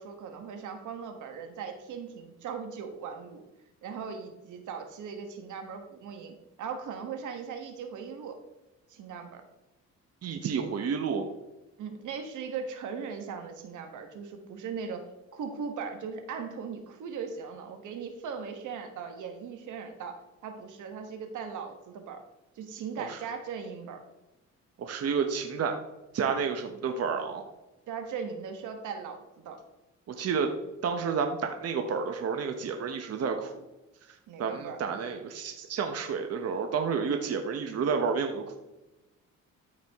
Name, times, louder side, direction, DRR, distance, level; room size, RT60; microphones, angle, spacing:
voice 1, 0.0-3.4 3.8-8.4 8.9-9.4 11.8-15.1 15.3-22.2 22.6-24.0 27.9-29.6 34.3-34.8, right 6 dB, 80° right, 6 dB, 1.4 m, -39 dB
voice 2, 10.2-11.3 23.0-23.2 24.8-25.8 26.1-27.4 30.1-30.5 30.8-33.6 34.4-38.6, right 6 dB, 55° right, 5 dB, 1.0 m, -30 dB
13.0 x 4.9 x 3.5 m, 1.0 s
cardioid pair, 90°, 30 cm